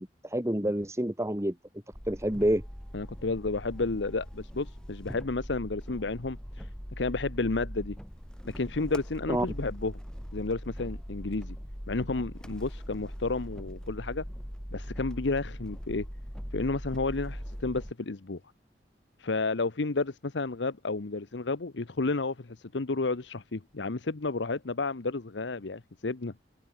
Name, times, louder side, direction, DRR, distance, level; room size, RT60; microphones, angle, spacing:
voice 1, 0.0-1.6 2.1-2.6 9.3-9.5, right 1 dB, 15° right, 2.2 m, -28 dB
sound 1, 1.9-17.9, equal, 5° left, 6.8 m, -41 dB
voice 2, 2.9-6.7 7.0-8.0 8.4-9.9 10.3-11.6 11.9-14.2 14.7-16.1 16.5-18.4 19.2-26.3, left 3 dB, 80° left, 0.9 m, -31 dB
open air
head